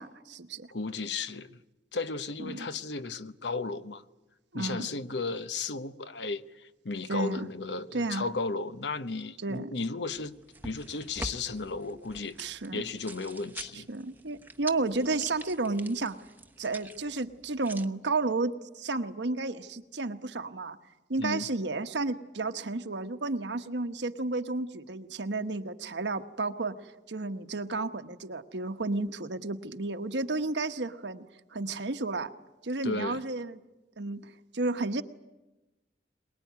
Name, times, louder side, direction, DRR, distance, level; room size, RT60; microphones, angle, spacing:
voice 1, 0.0-0.7 2.4-2.7 4.5-4.9 7.1-7.4 7.9-8.3 9.4-9.7 12.4-12.8 13.7-16.2 16.6-20.8 21.1-31.2 31.5-32.3 32.6-33.6 34.0-35.0, right 3 dB, 85° right, 1.2 m, -32 dB
voice 2, 0.7-1.6 1.9-4.0 4.5-10.3 10.6-12.3 12.7-13.9 21.2-21.5 32.8-33.2, left 3 dB, 80° left, 0.9 m, -34 dB
sound 1, 10.1-17.9, right 2 dB, 10° right, 0.8 m, -45 dB
23.0 x 21.0 x 9.4 m
head